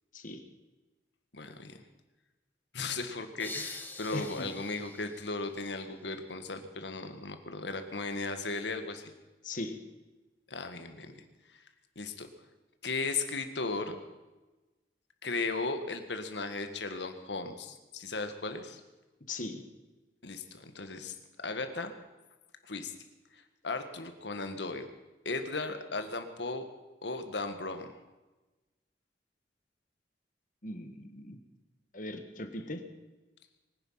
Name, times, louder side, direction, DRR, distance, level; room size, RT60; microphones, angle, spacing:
voice 1, 1.3-1.8 2.7-9.1 10.5-11.2 11.5-11.6 12.0-12.3 12.8-14.0 15.2-18.8 20.2-21.2 21.4-21.9 22.6-22.9 23.3-24.9 25.3-26.6 27.0-27.9, left 3 dB, 85° left, 8 dB, 1.8 m, -36 dB
sound 1, 3.4-6.2, left 2 dB, 10° left, 1.5 m, -45 dB
voice 2, 4.1-4.5 9.4-9.8 19.3-19.6 30.6-31.4 31.9-32.8, left 2 dB, 50° left, 7 dB, 1.7 m, -39 dB
24.0 x 10.5 x 5.7 m, 1.1 s
head